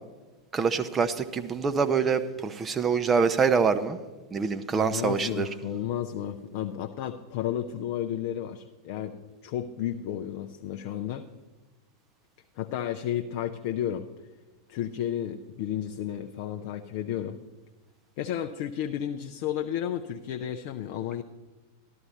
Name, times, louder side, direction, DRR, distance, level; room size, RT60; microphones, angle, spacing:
voice 1, 0.5-4.0 4.3-5.5, right 5 dB, 20° right, 9 dB, 0.6 m, -25 dB
voice 2, 4.8-9.2 9.4-11.2 12.6-14.1 14.7-17.4 18.2-21.2, left 10 dB, 45° left, 5 dB, 0.5 m, -32 dB
12.5 x 12.5 x 4.2 m, 1.2 s
figure-of-eight pair, 90°, 0 cm